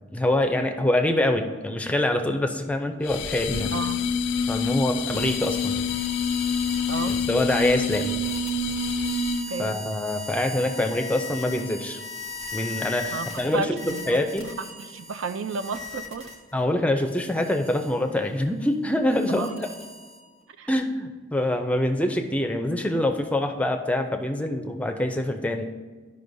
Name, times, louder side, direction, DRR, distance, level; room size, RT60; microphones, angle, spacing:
voice 1, 0.1-3.7 4.5-5.8 7.1-8.1 9.6-12.0 12.5-14.6 16.5-19.5 20.7-25.7, left 1 dB, 5° left, 5 dB, 0.4 m, -25 dB
sound 1, 3.1-9.6, left 4 dB, 75° left, 0.4 m, -27 dB
voice 2, 3.7-4.0 6.9-7.2 9.5-9.7 13.1-16.3 19.3-19.5 20.6-20.7, right 4 dB, 85° right, 10 dB, 0.4 m, -33 dB
sound 2, 5.1-16.6 17.0-20.4, left 2 dB, 30° right, 1.2 m, -39 dB
12.5 x 5.4 x 2.6 m, 1.4 s
head